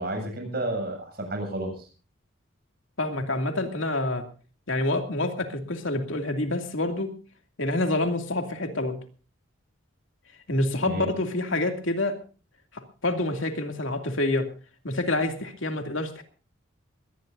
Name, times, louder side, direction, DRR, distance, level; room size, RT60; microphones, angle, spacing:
voice 1, 0.0-1.9 10.8-11.1, right 1 dB, 50° right, 4 dB, 7.6 m, -31 dB
voice 2, 3.0-4.3 4.7-7.1 7.6-9.0 10.5-12.2 12.7-14.5 14.8-16.2, left 2 dB, 75° left, 5 dB, 2.5 m, -27 dB
22.0 x 19.0 x 2.6 m, 0.38 s
head